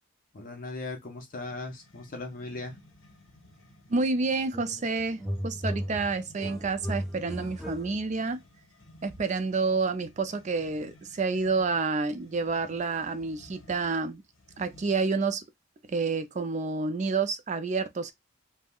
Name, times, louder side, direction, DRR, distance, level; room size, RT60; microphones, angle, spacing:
voice 1, 0.3-2.8, left 2 dB, 45° left, 0.8 m, -38 dB
sound 1, 1.4-15.1, left 1 dB, 65° left, 1.1 m, -56 dB
voice 2, 3.9-8.4 9.0-14.2 14.6-15.4 15.9-18.1, right 4 dB, 35° right, 0.4 m, -29 dB
sound 2, 4.5-4.9 5.2-8.3, equal, ahead, 0.7 m, -36 dB
3.5 x 2.2 x 2.2 m
head